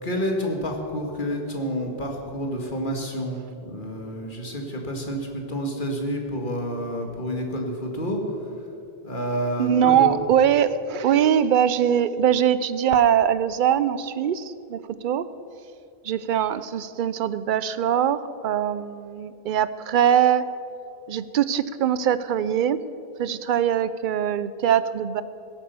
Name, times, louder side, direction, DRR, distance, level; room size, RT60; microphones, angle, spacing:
voice 1, 0.0-8.4 9.0-10.1, equal, 50° left, 1 dB, 2.0 m, -29 dB
voice 2, 9.6-15.2 16.0-20.4 21.1-22.8 23.2-25.2, right 9 dB, 60° right, 15 dB, 0.6 m, -22 dB
17.0 x 8.3 x 6.9 m, 2.6 s
omnidirectional pair, 1.1 m